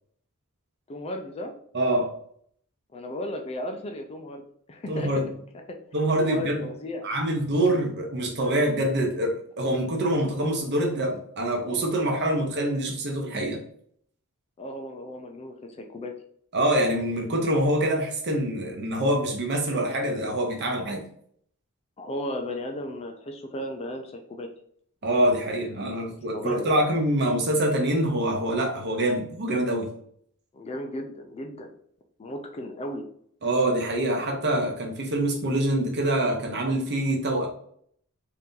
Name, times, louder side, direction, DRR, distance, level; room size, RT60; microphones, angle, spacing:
voice 1, 0.9-1.5 2.9-5.1 5.7-5.8 6.2-7.1 14.6-16.1 22.0-24.5 25.9-26.8 30.5-31.7 32.2-33.1, left 1 dB, 25° left, 4 dB, 0.4 m, -35 dB
voice 2, 1.7-2.1 4.9-5.3 5.9-6.6 7.0-13.6 16.5-21.0 25.0-29.9 33.4-37.5, right 1 dB, 50° right, 1 dB, 0.8 m, -25 dB
2.9 x 2.6 x 3.6 m, 0.65 s
head